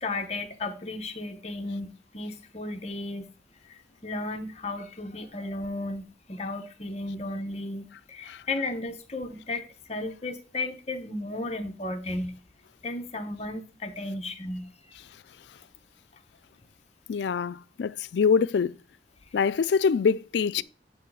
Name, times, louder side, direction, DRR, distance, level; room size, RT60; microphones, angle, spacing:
voice 1, 0.0-3.3 3.7-12.4 12.8-14.7, left 2 dB, 35° left, 1.0 m, -34 dB
voice 2, 17.1-18.8 19.3-20.6, left 6 dB, 75° left, 0.4 m, -24 dB
9.6 x 3.2 x 6.2 m
head